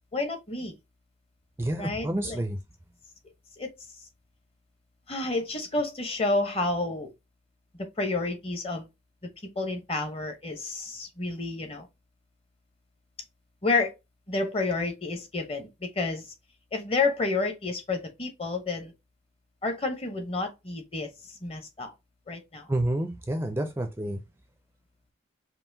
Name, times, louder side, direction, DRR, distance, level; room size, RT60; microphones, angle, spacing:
voice 1, 0.1-0.7 1.8-2.4 3.6-3.7 5.1-7.1 7.8-8.9 9.6-11.9 13.6-13.9 14.3-16.3 16.7-18.9 19.6-21.1 21.4-21.9 22.3-22.7, left 3 dB, 30° left, 0.8 m, -30 dB
voice 2, 1.6-2.6 22.7-24.2, right 1 dB, 10° right, 0.4 m, -29 dB
5.5 x 2.5 x 2.6 m
head